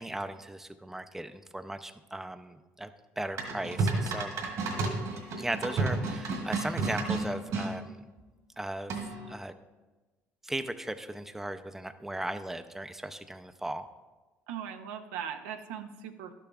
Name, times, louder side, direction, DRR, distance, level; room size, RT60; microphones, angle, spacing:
voice 1, 0.0-2.9 3.2-4.4 5.4-8.1 8.6-9.0 9.3-9.5 10.4-13.9, right 1 dB, 5° right, 9 dB, 0.5 m, -37 dB
sound 1, 3.4-7.7 8.9-9.3, right 3 dB, 65° right, 1.8 m, -31 dB
voice 2, 14.5-16.3, right 8 dB, 85° right, 6 dB, 0.6 m, -39 dB
12.0 x 6.8 x 2.3 m, 1.2 s
hypercardioid pair, 65°, 6 cm